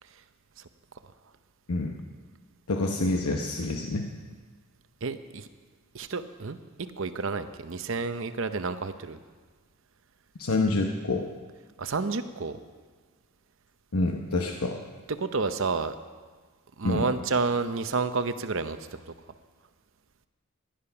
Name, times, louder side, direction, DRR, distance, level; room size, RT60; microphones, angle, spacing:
voice 1, 2.7-4.1 10.4-11.3 13.9-14.8 16.8-17.1, left 2 dB, 85° left, 2 dB, 1.0 m, -27 dB
voice 2, 5.0-5.5 5.9-9.2 11.8-12.6 15.1-16.0 16.8-18.8 19.1-19.2, right 4 dB, 60° right, 10 dB, 0.7 m, -30 dB
16.0 x 10.5 x 5.8 m, 1.5 s
head